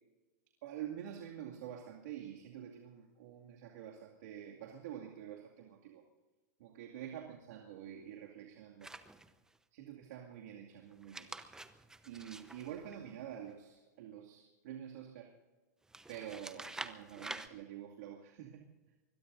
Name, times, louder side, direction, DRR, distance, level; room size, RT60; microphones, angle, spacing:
voice 1, 0.6-6.0 6.6-8.9 9.7-11.5 12.0-15.3 16.1-18.7, right 10 dB, 70° right, 0 dB, 2.3 m, -47 dB
sound 1, 8.8-9.6 10.9-13.5 15.9-17.5, right 2 dB, 5° right, 0.9 m, -48 dB
24.0 x 22.0 x 2.7 m, 1.2 s
hypercardioid pair, 125°, 9 cm